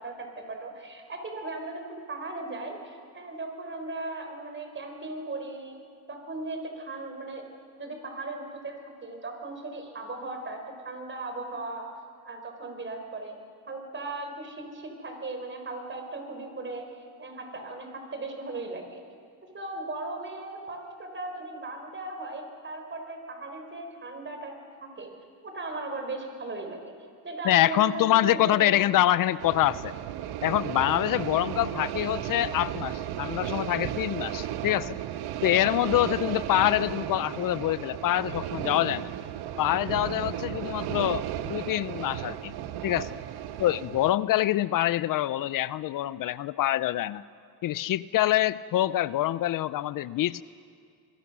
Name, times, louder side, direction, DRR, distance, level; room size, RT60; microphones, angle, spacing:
voice 1, 0.0-5.8 6.1-7.5 7.8-11.9 12.2-13.4 13.7-19.0 19.5-25.1 25.4-26.9 27.2-29.3 31.4-31.6, right 2 dB, 30° right, 4 dB, 4.7 m, -37 dB
voice 2, 27.5-29.9 30.4-35.0 35.4-39.1 39.6-42.5 42.8-43.2 43.6-47.2 47.6-50.4, left 14 dB, 60° left, 17 dB, 0.5 m, -25 dB
sound 1, 29.4-44.1, right 11 dB, 90° right, 1.1 m, -34 dB
26.5 x 22.0 x 6.2 m, 2.2 s
cardioid pair, 115°, 38 cm